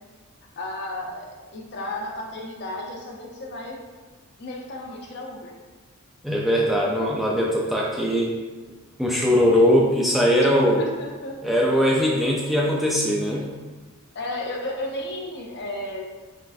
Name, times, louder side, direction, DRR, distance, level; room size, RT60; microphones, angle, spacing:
voice 1, 0.6-3.8 4.4-5.5 10.4-10.5 10.8-11.4 14.1-16.0, left 1 dB, 50° left, 0 dB, 0.7 m, -33 dB
voice 2, 6.2-8.3 9.0-10.8 11.4-13.5, equal, ahead, -3 dB, 0.4 m, -20 dB
5.1 x 3.2 x 2.6 m, 1.3 s
head